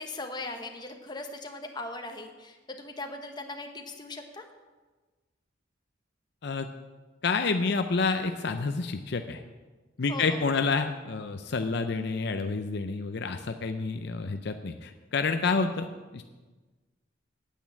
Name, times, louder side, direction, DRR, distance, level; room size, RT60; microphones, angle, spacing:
voice 1, 0.0-4.4 10.1-10.4, left 2 dB, 25° left, 4 dB, 1.2 m, -39 dB
voice 2, 7.2-9.4 10.0-15.9 16.1-16.2, left 4 dB, 60° left, 7 dB, 0.6 m, -29 dB
9.2 x 8.4 x 8.7 m, 1.3 s
head